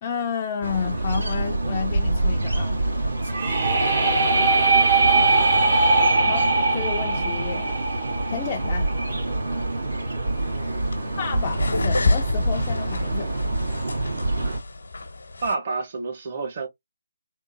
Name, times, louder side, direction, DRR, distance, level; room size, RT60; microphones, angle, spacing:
voice 1, 0.0-2.8 6.2-7.7 8.3-8.9 11.2-13.3, left 7 dB, 25° left, 0.4 m, -31 dB
sound 1, 0.6-14.6, right 2 dB, 80° right, 2.1 m, -27 dB
sound 2, 3.2-9.1, right 3 dB, 65° right, 1.5 m, -21 dB
sound 3, 10.3-15.5, left 2 dB, 80° left, 0.9 m, -28 dB
voice 2, 10.5-10.9 14.4-14.6 15.4-16.7, right 3 dB, 40° right, 1.0 m, -30 dB
3.6 x 2.5 x 2.6 m
hypercardioid pair, 160°, 0 cm